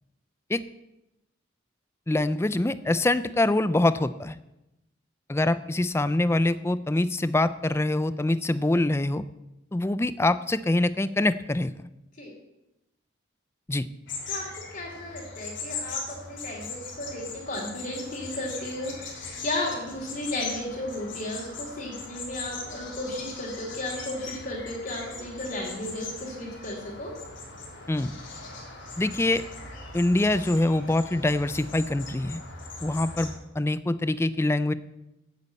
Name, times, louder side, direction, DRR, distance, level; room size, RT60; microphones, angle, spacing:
voice 1, 2.1-4.4 5.3-9.2 9.7-11.8 13.7-13.9 27.9-28.1 29.0-29.4 29.9-32.4 32.8-34.7, left 2 dB, 15° left, 14 dB, 0.4 m, -24 dB
sound 1, 14.1-33.3, left 3 dB, 65° left, 3.0 m, -40 dB
voice 2, 14.7-27.1, left 1 dB, 45° left, -5 dB, 2.8 m, -34 dB
8.5 x 8.3 x 8.2 m, 0.92 s
head